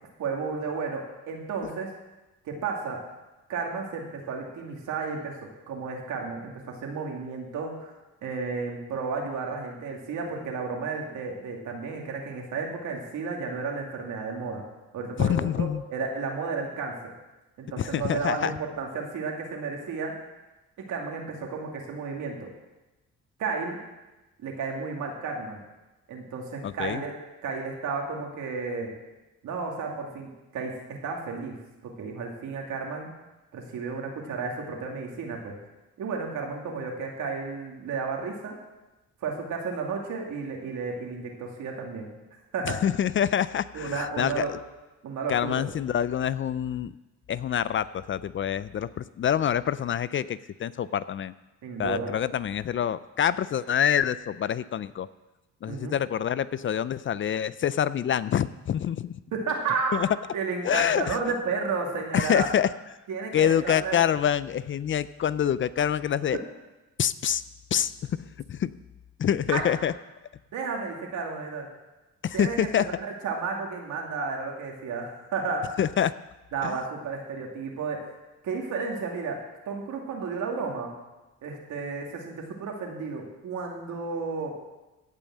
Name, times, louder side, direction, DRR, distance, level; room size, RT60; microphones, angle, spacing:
voice 1, 0.2-1.9 2.4-3.0 3.5-7.9 8.2-14.6 14.9-17.0 17.6-20.1 20.9-22.5 23.4-23.8 24.4-25.6 26.1-27.2 27.4-28.9 29.4-31.6 31.8-33.1 33.5-35.6 36.0-38.6 39.2-42.1 42.5-42.8 43.7-44.5 45.0-45.8 51.6-52.1 55.7-56.0 59.3-60.0 60.3-62.5 63.1-64.1 69.5-69.6 70.5-71.7 72.3-75.8 76.5-78.1 78.4-79.4 79.7-80.9 81.4-84.5, right 4 dB, 75° right, 0 dB, 2.7 m, -32 dB
voice 2, 15.2-15.8 17.8-18.5 26.6-27.0 42.7-44.6 45.3-46.9 47.3-51.3 51.8-55.1 55.6-59.1 59.9-60.1 60.6-61.2 62.1-62.7 63.3-66.4 67.0-67.4 67.7-67.9 68.5-68.7 69.2-69.9 72.2-72.8 75.8-76.1 76.6-76.8, left 9 dB, 40° left, 17 dB, 0.4 m, -26 dB
15.5 x 5.4 x 7.6 m, 1.1 s
cardioid pair, 90°, 30 cm